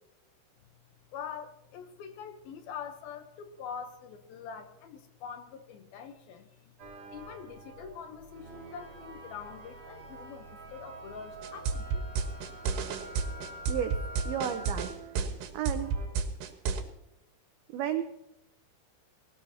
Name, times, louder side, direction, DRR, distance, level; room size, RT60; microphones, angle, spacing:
voice 1, 1.1-6.7 7.1-12.2, left 7 dB, 75° left, 7 dB, 2.3 m, -44 dB
sound 1, 6.8-16.1, right 3 dB, 30° right, 3.3 m, -48 dB
sound 2, 11.4-16.8, right 5 dB, 70° right, 3.2 m, -30 dB
Wind instrument woodwind instrument, 11.7-15.1, left 1 dB, 45° left, 3.5 m, -47 dB
voice 2, 14.3-14.9 15.5-15.9 17.7-18.0, right 10 dB, 85° right, 7 dB, 2.2 m, -32 dB
20.0 x 18.0 x 2.9 m, 0.86 s
omnidirectional pair, 5.4 m